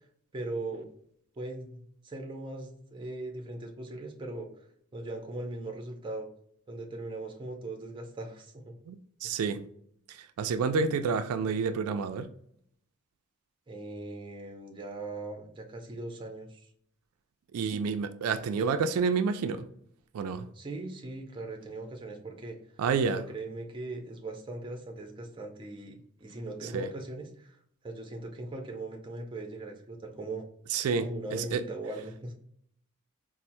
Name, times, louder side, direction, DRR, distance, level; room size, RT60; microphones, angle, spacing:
voice 1, 0.3-0.9 1.4-4.5 4.9-6.3 6.7-8.7 9.2-9.4 13.7-16.6 20.5-22.6 23.1-27.6 27.8-30.4 31.0-32.3, right 2 dB, 20° right, 3 dB, 0.5 m, -39 dB
voice 2, 8.9-9.6 10.4-12.3 17.5-19.7 20.1-20.5 22.8-23.2 26.7-26.9 30.7-31.1 31.3-31.6, right 5 dB, 80° right, 9 dB, 0.3 m, -29 dB
4.3 x 2.0 x 2.5 m, 0.67 s
head